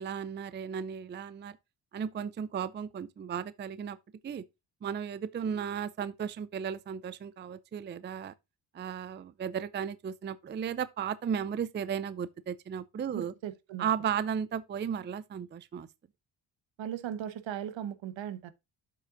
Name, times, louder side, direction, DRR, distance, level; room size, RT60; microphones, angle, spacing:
voice 1, 0.0-1.6 1.9-4.0 4.2-4.4 4.8-8.3 8.7-13.3 13.8-15.9, right 8 dB, 25° right, 0.4 m, -35 dB
voice 2, 13.1-13.9 16.8-18.5, right 10 dB, 75° right, 1.1 m, -38 dB
7.8 x 5.6 x 3.7 m
cardioid pair, 130°, 46 cm